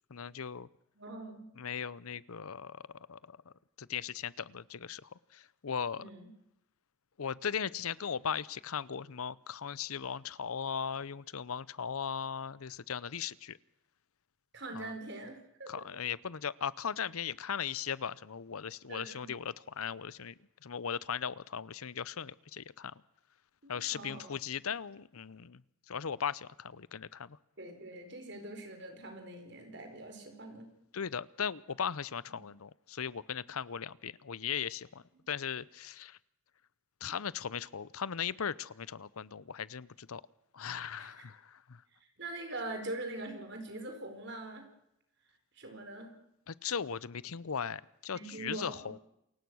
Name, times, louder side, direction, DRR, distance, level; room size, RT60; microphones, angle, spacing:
voice 1, 0.1-0.7 1.6-6.0 7.2-13.6 14.7-14.9 15.7-20.3 20.6-22.9 23.7-25.6 25.9-27.4 30.9-36.2 37.0-40.2 40.5-41.8 46.5-49.0, left 7 dB, 85° left, 21 dB, 0.7 m, -38 dB
voice 2, 1.0-1.5 6.0-6.3 14.5-15.8 18.9-19.3 23.6-24.3 27.6-30.7 41.0-41.3 42.2-44.6 45.5-46.1 48.1-48.9, right 2 dB, 55° right, 5 dB, 4.6 m, -43 dB
28.0 x 16.5 x 6.3 m, 0.80 s
head